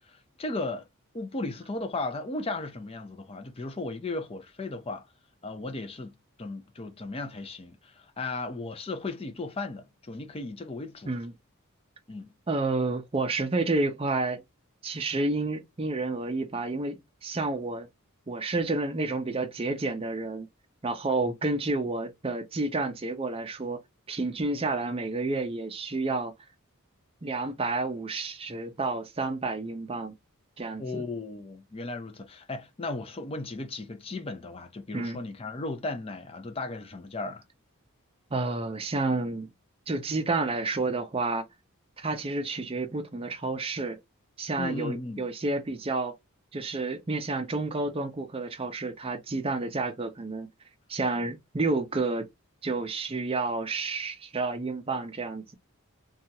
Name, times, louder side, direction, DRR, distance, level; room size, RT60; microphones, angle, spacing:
voice 1, 0.1-0.9 1.1-5.1 5.4-11.2 12.1-12.3 30.8-37.4 44.6-45.2, left 2 dB, 25° left, 0.5 m, -36 dB
voice 2, 12.5-14.4 14.8-17.9 18.3-20.5 20.8-23.8 24.1-26.3 27.2-30.1 30.6-31.0 34.9-35.2 38.3-39.5 39.9-41.4 42.0-44.0 44.4-46.1 46.5-50.5 50.9-52.3 52.6-55.5, right 3 dB, 25° right, 0.5 m, -30 dB
2.8 x 2.3 x 2.7 m
head